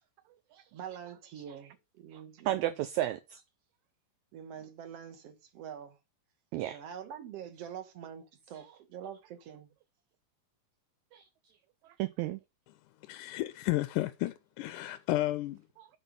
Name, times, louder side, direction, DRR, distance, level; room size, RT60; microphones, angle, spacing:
voice 1, 0.5-2.7 4.3-6.0 6.6-9.7, right 8 dB, 60° right, 1.9 m, -45 dB
voice 2, 2.1-3.4 6.5-6.8 11.1-11.3 12.0-12.4 15.8-15.9, right 14 dB, 85° right, 1.6 m, -33 dB
voice 3, 13.1-15.6, left 17 dB, 80° left, 1.9 m, -32 dB
9.0 x 4.6 x 5.3 m
omnidirectional pair, 3.8 m